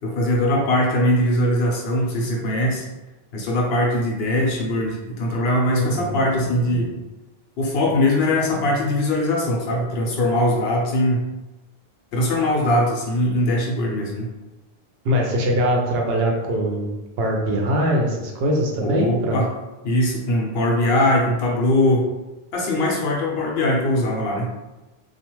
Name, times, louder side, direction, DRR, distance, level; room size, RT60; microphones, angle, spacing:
voice 1, 0.0-2.9 3.3-7.0 7.6-11.3 12.1-14.3 18.8-19.5 19.8-22.1 22.5-24.5, left 1 dB, 75° left, -2 dB, 0.9 m, -21 dB
voice 2, 5.7-6.2 15.0-19.4, equal, 75° right, 0 dB, 0.8 m, -22 dB
2.4 x 2.3 x 3.0 m, 1.1 s
omnidirectional pair, 1.0 m